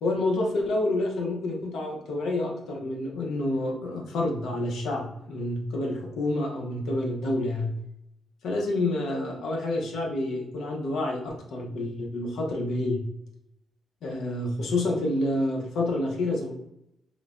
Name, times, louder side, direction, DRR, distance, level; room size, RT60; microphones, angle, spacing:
voice 1, 0.0-7.7 8.4-13.0 14.0-16.5, left 2 dB, 85° left, 0 dB, 0.7 m, -28 dB
3.1 x 2.1 x 2.4 m, 0.80 s
cardioid pair, 105°, 0 cm